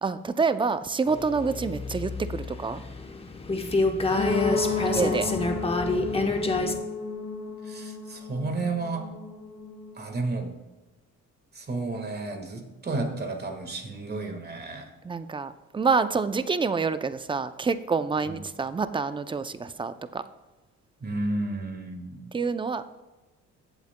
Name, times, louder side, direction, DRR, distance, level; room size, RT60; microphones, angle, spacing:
voice 1, 0.0-2.8 4.8-5.3 15.0-20.2 22.3-22.8, right 4 dB, 15° right, 12 dB, 0.4 m, -27 dB
sound 1, 1.1-6.7, left 3 dB, 20° left, 0.9 m, -28 dB
voice 2, 4.1-5.4 7.7-9.1 9.9-10.5 11.5-14.9 18.3-18.4 21.0-22.3, right 2 dB, 35° right, 4 dB, 1.6 m, -32 dB
sound 2, 4.2-10.0, left 4 dB, 55° left, 2.4 m, -32 dB
15.0 x 7.9 x 2.2 m, 1.1 s
cardioid pair, 90°, 30 cm